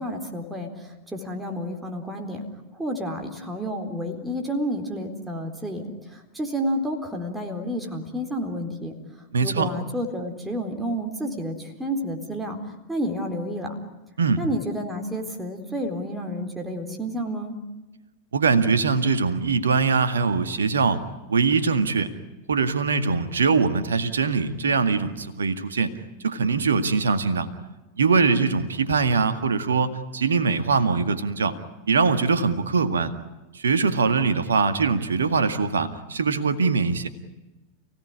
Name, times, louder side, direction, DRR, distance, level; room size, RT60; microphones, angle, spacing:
voice 1, 0.0-2.4 2.7-5.8 6.1-9.0 9.4-12.6 12.9-13.8 14.4-17.6, equal, 10° right, 3 dB, 4.1 m, -30 dB
voice 2, 9.3-9.7 14.2-14.4 18.3-21.0 21.3-22.1 22.5-25.9 26.2-27.5 28.0-31.6 31.9-33.1 33.5-37.1, right 4 dB, 70° right, 10 dB, 2.0 m, -22 dB
30.0 x 17.5 x 9.8 m, 1.1 s
figure-of-eight pair, 90°, 0 cm